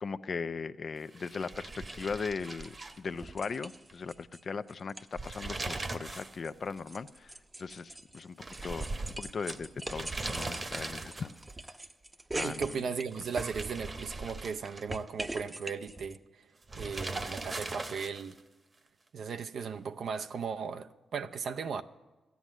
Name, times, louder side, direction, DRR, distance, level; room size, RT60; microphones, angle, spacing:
voice 1, 0.0-8.4 8.6-11.4 12.3-12.9, left 5 dB, 55° left, 0.5 m, -38 dB
sound 1, 1.1-3.6 3.9-4.0 5.0-6.4 6.7-6.8 8.4-11.5 13.1-15.1 16.7-18.4, right 2 dB, 40° right, 1.1 m, -40 dB
sound 2, 1.9-2.1 2.4-4.4 4.7-5.5 5.8-14.0 14.3-16.2, right 2 dB, 20° right, 0.8 m, -43 dB
voice 2, 12.4-16.4 16.8-18.3 19.1-21.8, right 6 dB, 70° right, 0.6 m, -37 dB
13.0 x 9.4 x 7.3 m
supercardioid pair, 55°, 0 cm